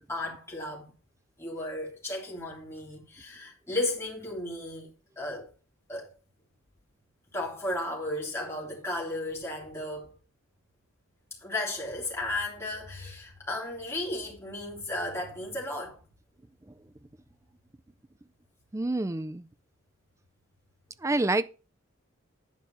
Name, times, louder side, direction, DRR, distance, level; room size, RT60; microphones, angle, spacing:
voice 1, 0.1-0.9 1.4-5.5 5.9-6.1 7.3-10.1 11.4-16.0, left 1 dB, 15° left, 3.4 m, -34 dB
voice 2, 18.7-19.5 21.0-21.4, right 2 dB, 15° right, 0.4 m, -27 dB
10.5 x 5.1 x 5.6 m
head